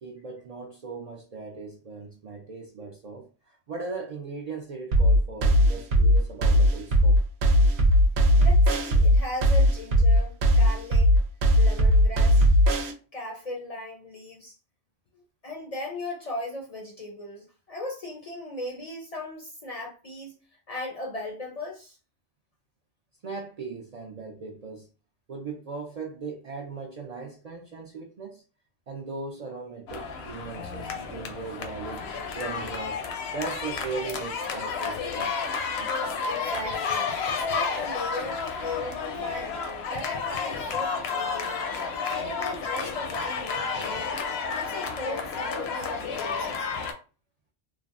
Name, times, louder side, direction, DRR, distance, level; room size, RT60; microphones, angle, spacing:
voice 1, 0.0-7.2 23.2-24.9 25.3-28.4 28.9-32.1 32.4-33.0 33.3-35.4, right 4 dB, 55° right, 0.4 m, -38 dB
sound 1, 4.9-12.9, equal, 80° right, 0.9 m, -19 dB
voice 2, 8.4-11.2 11.6-12.4 13.1-14.5 15.4-20.4 20.7-22.0 36.2-39.5 39.8-41.6 41.9-44.2 44.5-46.7, left 2 dB, 50° left, 0.5 m, -37 dB
sound 2, 29.9-46.9, left 5 dB, 80° left, 0.8 m, -31 dB
3.2 x 2.1 x 2.4 m
omnidirectional pair, 1.1 m